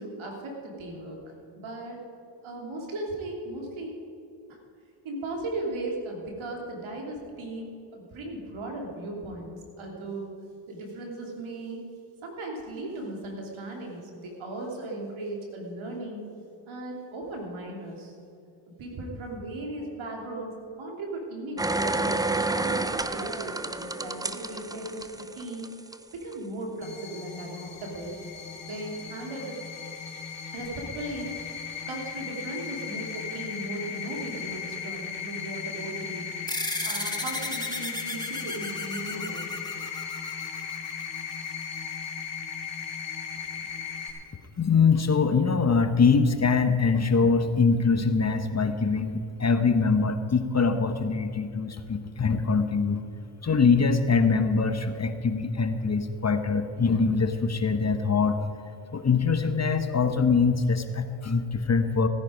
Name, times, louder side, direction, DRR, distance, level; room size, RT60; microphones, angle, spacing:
voice 1, 0.0-2.0 2.4-3.9 4.5-4.6 5.0-10.3 10.7-11.8 12.2-16.3 16.7-18.1 18.8-25.0 25.3-25.7 26.1-28.2 28.7-29.7 30.5-31.3 31.9-36.3 36.8-39.5, right 2 dB, 75° right, 0 dB, 3.1 m, -37 dB
sound 1, 21.6-25.9 26.3-26.4, right 2 dB, 10° right, 0.5 m, -29 dB
sound 2, 26.8-44.1, left 7 dB, 60° left, 2.4 m, -37 dB
sound 3, 36.5-41.3, left 1 dB, 10° left, 1.8 m, -35 dB
voice 2, 44.6-53.0 53.4-58.4 58.9-62.1, left 5 dB, 35° left, 9 dB, 1.1 m, -23 dB
16.5 x 10.5 x 5.1 m, 2.6 s
supercardioid pair, 60°, 49 cm